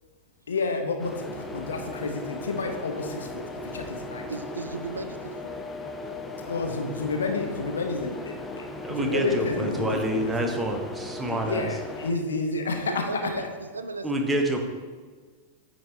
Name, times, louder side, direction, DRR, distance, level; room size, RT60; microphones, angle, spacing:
voice 1, 0.5-3.4 3.7-4.3 6.4-10.5 11.3-13.1, left 4 dB, 70° left, 4 dB, 0.8 m, -30 dB
sound 1, 1.0-12.1, left 1 dB, 15° left, 0.6 m, -37 dB
voice 2, 4.3-5.5 12.1-12.3 12.5-13.5 13.7-14.1, right 3 dB, 75° right, 9 dB, 0.4 m, -35 dB
voice 3, 8.8-11.7 14.0-14.6, right 1 dB, 15° right, 3 dB, 0.9 m, -27 dB
8.9 x 4.1 x 3.2 m, 1.5 s
figure-of-eight pair, 90°, 0 cm